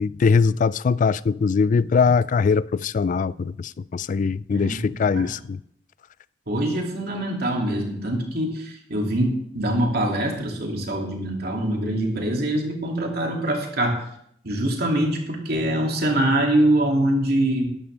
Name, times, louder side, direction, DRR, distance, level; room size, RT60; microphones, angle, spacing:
voice 1, 0.0-5.6, left 5 dB, 45° left, 0.3 m, -21 dB
voice 2, 4.5-5.3 6.5-13.9 14.4-17.7, right 1 dB, 60° right, 2.5 m, -24 dB
12.5 x 11.5 x 3.4 m
head